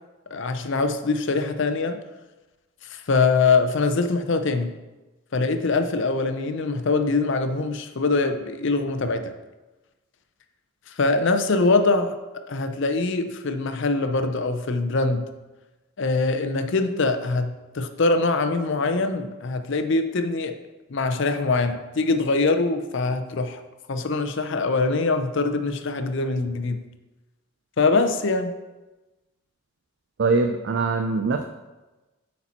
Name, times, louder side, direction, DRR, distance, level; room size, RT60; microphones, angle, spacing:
voice 1, 0.3-2.0 2.8-4.7 5.3-9.3 10.9-12.1 12.5-15.3 16.0-20.6 20.9-23.6 23.9-26.8 27.8-28.5, left 3 dB, 55° left, 8 dB, 0.5 m, -23 dB
voice 2, 30.2-31.4, right 3 dB, 50° right, 6 dB, 0.4 m, -22 dB
8.4 x 4.3 x 4.2 m, 1.1 s
head